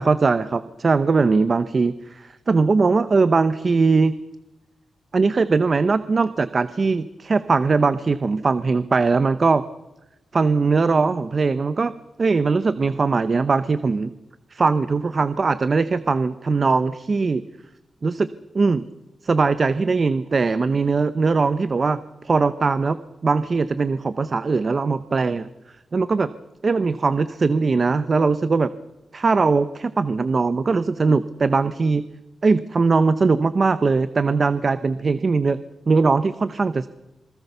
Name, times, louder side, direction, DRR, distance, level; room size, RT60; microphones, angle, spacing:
voice 1, 0.0-4.2 5.1-9.6 10.3-11.9 12.2-14.1 14.5-17.4 18.0-18.3 18.5-18.9 19.2-22.0 22.2-23.0 23.2-25.5 25.9-26.3 26.6-28.7 29.1-32.0 32.4-35.6 35.9-36.9, right 4 dB, 40° right, 14 dB, 0.7 m, -20 dB
27.0 x 20.0 x 6.8 m, 0.99 s
wide cardioid pair, 140°, 0 cm